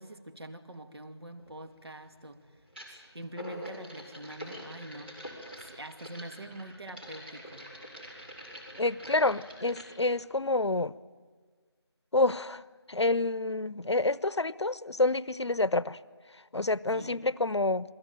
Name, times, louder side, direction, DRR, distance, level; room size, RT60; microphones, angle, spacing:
voice 1, 0.0-2.5 2.9-5.2 5.6-7.7 16.9-17.2, right 1 dB, 65° right, 2.6 m, -45 dB
sound 1, 1.4-1.5 2.7-3.0 3.3-9.8, equal, 20° right, 5.5 m, -45 dB
voice 2, 8.8-10.9 12.1-12.6 12.9-16.0 16.5-17.9, left 2 dB, 80° left, 0.9 m, -28 dB
29.0 x 22.0 x 9.2 m
figure-of-eight pair, 175°, 14 cm